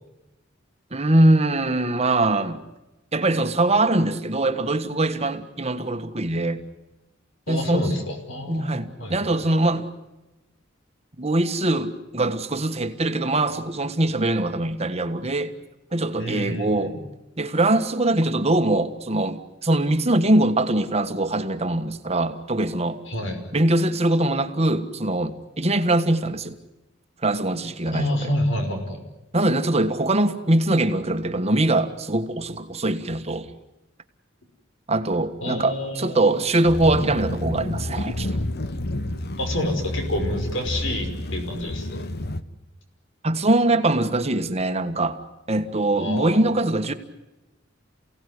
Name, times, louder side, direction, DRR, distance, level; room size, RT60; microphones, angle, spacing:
voice 1, 0.9-2.6 3.1-6.6 7.5-7.9 8.5-9.9 11.2-15.5 15.9-17.0 17.4-23.0 23.5-26.6 27.2-28.3 29.3-33.5 34.9-38.3 43.2-45.2 45.5-46.9, right 2 dB, 35° right, 8 dB, 1.5 m, -22 dB
voice 2, 7.5-9.1 16.2-17.0 23.1-23.4 27.9-29.0 35.4-36.4 39.4-42.1 45.9-46.4, left 1 dB, 75° left, 5 dB, 5.5 m, -28 dB
sound 1, 36.6-42.4, left 1 dB, 55° left, 1.2 m, -29 dB
29.0 x 17.5 x 9.8 m, 1.0 s
head